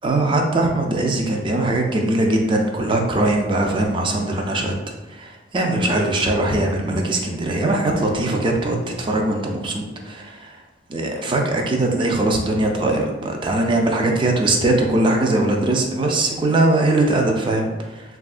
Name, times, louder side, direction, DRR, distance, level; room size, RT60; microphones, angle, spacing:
voice 1, 0.0-4.7 5.2-10.2 10.9-17.7, right 2 dB, 25° right, 2 dB, 0.4 m, -20 dB
3.5 x 2.3 x 2.4 m, 1.1 s
head